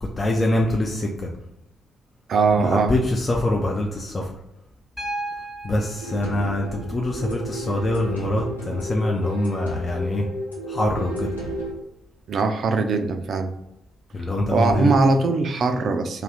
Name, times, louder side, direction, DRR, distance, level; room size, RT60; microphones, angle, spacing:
voice 1, 0.0-1.3 2.6-4.3 5.6-10.2 10.7-11.3 14.1-15.0, left 1 dB, 30° left, 0 dB, 0.5 m, -24 dB
voice 2, 2.3-2.9 12.3-13.5 14.5-16.2, right 4 dB, 50° right, 6 dB, 0.4 m, -21 dB
Piano, 5.0-9.0 10.5-10.6, right 1 dB, 5° left, 0.8 m, -37 dB
sound 1, 6.0-11.7, equal, 85° left, 0.5 m, -32 dB
2.4 x 2.4 x 3.3 m, 0.88 s
figure-of-eight pair, 40°, 0 cm